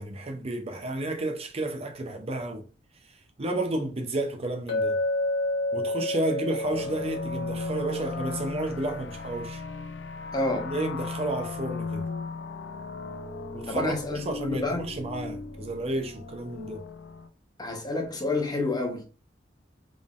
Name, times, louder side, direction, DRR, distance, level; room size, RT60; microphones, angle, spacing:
voice 1, 0.0-2.7 3.0-5.0 5.7-9.6 10.7-12.1 13.5-16.8, right 2 dB, 35° right, 0.5 m, -31 dB
Chink clink, 4.7-8.9, left 2 dB, 70° left, 1.6 m, -30 dB
sound 1, 6.6-17.3, left 4 dB, 85° left, 0.6 m, -37 dB
voice 2, 10.3-10.7 13.7-14.9 17.6-19.0, left 2 dB, 25° left, 0.9 m, -29 dB
3.8 x 3.5 x 2.4 m
head